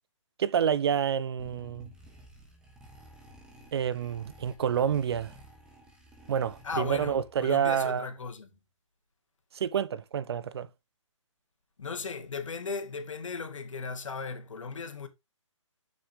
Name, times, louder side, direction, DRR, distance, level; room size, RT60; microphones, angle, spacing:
voice 1, 0.4-1.9 3.7-5.3 6.3-8.1 9.5-10.7, right 8 dB, 50° right, 0.7 m, -28 dB
sound 1, 1.4-7.5, equal, 5° right, 1.3 m, -53 dB
voice 2, 6.6-8.5 11.8-15.1, left 5 dB, 75° left, 2.2 m, -37 dB
6.6 x 6.4 x 3.7 m
hypercardioid pair, 155°, 16 cm